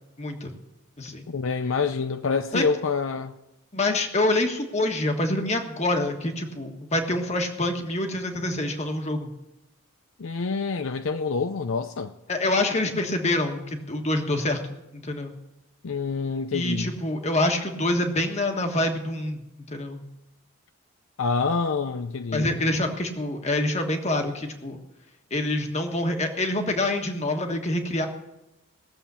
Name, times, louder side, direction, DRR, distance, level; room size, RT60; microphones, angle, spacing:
voice 1, 0.2-0.5 1.0-1.3 2.5-2.6 3.7-9.3 12.3-15.3 16.5-19.4 19.7-20.0 22.3-24.8 25.3-28.1, left 1 dB, 30° left, 1.4 m, -26 dB
voice 2, 1.3-3.3 10.2-12.1 15.8-16.9 21.2-22.7, left 4 dB, 65° left, 0.5 m, -27 dB
18.5 x 7.4 x 6.9 m
head